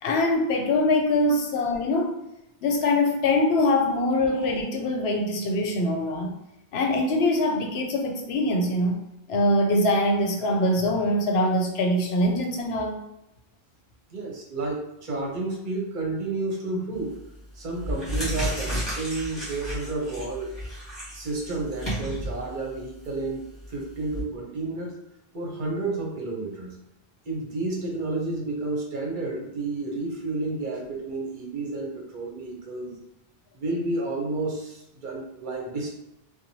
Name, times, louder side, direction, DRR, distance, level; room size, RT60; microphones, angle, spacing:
voice 1, 0.0-2.1 2.6-6.3 6.7-9.0 9.3-13.0, left 1 dB, 85° left, 3 dB, 0.8 m, -23 dB
voice 2, 14.1-17.1 17.6-20.5 21.1-23.4 23.7-24.9 25.3-26.8 27.3-33.0 33.5-35.9, right 2 dB, 55° right, -1 dB, 0.8 m, -31 dB
sound 1, 17.0-17.3 17.7-24.2, equal, 25° left, 1.4 m, -33 dB
3.0 x 2.1 x 2.7 m, 0.85 s
omnidirectional pair, 1.0 m